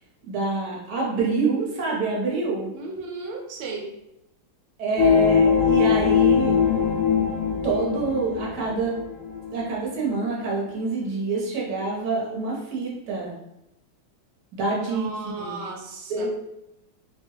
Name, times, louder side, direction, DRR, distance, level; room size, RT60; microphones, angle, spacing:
voice 1, 0.3-2.7 4.8-6.6 7.6-9.0 9.5-13.3 14.5-15.6 16.1-16.3, right 3 dB, 60° right, -4 dB, 1.4 m, -26 dB
voice 2, 2.7-3.9 14.7-16.3, right 3 dB, 90° right, 1 dB, 1.5 m, -35 dB
sound 1, 5.0-9.8 10.3-10.4, left 7 dB, 75° left, 1.1 m, -22 dB
3.4 x 2.2 x 3.1 m, 0.87 s
omnidirectional pair, 2.2 m